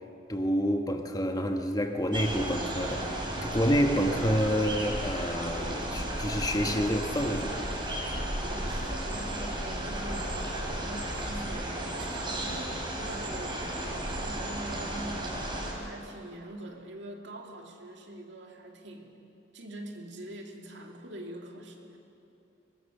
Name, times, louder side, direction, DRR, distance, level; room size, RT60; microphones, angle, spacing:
voice 1, 0.3-7.7, equal, 20° left, 5 dB, 1.2 m, -28 dB
sound 1, 2.1-15.7, right 1 dB, 25° right, 4.0 m, -34 dB
voice 2, 8.5-10.4 10.7-15.4 15.7-19.2 19.5-22.0, right 1 dB, 70° right, 2 dB, 2.5 m, -43 dB
23.0 x 20.5 x 6.6 m, 2.7 s
head